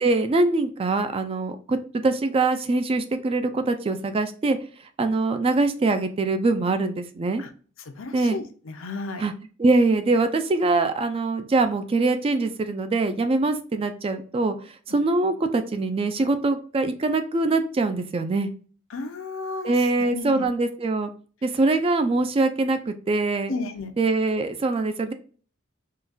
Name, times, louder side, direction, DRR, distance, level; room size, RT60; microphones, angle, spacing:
voice 1, 0.0-4.6 5.0-7.4 8.1-8.4 9.2-9.3 9.6-14.6 14.9-18.5 19.6-21.1 21.4-23.5 24.0-25.1, right 3 dB, 30° right, 9 dB, 0.3 m, -23 dB
voice 2, 7.8-9.2 18.9-20.5 23.5-23.9, left 3 dB, 85° left, 6 dB, 0.6 m, -33 dB
3.7 x 2.3 x 2.6 m, 0.41 s
head